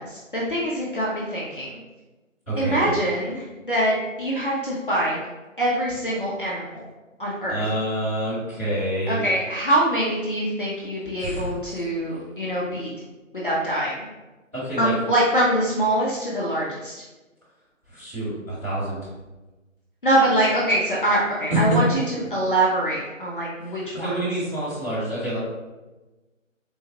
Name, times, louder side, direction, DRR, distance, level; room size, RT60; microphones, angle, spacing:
voice 1, 0.0-1.8 2.6-5.2 5.6-6.8 7.2-7.7 9.1-12.9 13.4-14.1 14.8-17.0 20.0-24.1, right 1 dB, 40° left, -6 dB, 0.5 m, -24 dB
voice 2, 2.5-2.9 7.5-9.3 11.2-11.6 14.5-14.9 17.9-19.0 21.5-21.6 23.9-25.4, right 1 dB, 10° right, -17 dB, 1.1 m, -27 dB
3.8 x 2.3 x 2.8 m, 1.1 s
figure-of-eight pair, 160°, 40 cm